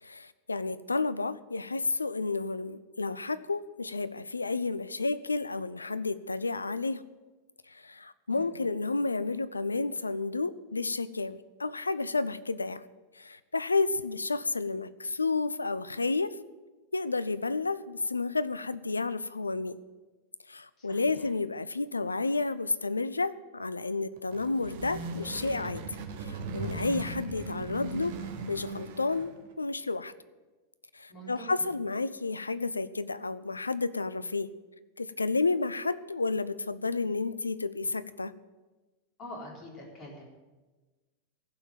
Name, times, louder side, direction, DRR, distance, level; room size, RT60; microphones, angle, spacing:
voice 1, 0.0-7.0 7.7-12.8 13.2-16.4 16.9-19.8 20.5-25.8 26.2-28.2 28.5-30.1 30.9-34.5 35.0-38.3, left 3 dB, 80° left, 16 dB, 0.4 m, -31 dB
voice 2, 20.8-21.3 31.1-31.7 39.2-40.4, equal, 35° left, -2 dB, 4.1 m, -45 dB
sound 1, 24.2-29.5, right 4 dB, 50° right, 1.4 m, -38 dB
15.5 x 5.7 x 9.0 m, 1.2 s
figure-of-eight pair, 90°, 0 cm